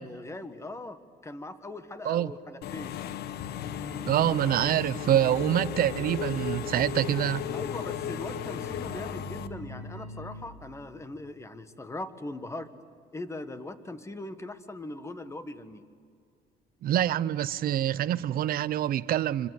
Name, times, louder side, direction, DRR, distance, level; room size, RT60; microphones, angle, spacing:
voice 1, 0.0-2.9 7.5-12.7 13.1-15.8, left 2 dB, 15° left, 1.5 m, -40 dB
Engine / Mechanisms, 2.6-9.5, left 10 dB, 70° left, 1.0 m, -36 dB
sound 1, 3.6-10.4, left 1 dB, 55° left, 4.9 m, -41 dB
voice 2, 4.1-7.4 16.8-19.5, right 11 dB, 60° right, 0.8 m, -26 dB
26.0 x 25.5 x 8.3 m
cardioid pair, 110°, 17 cm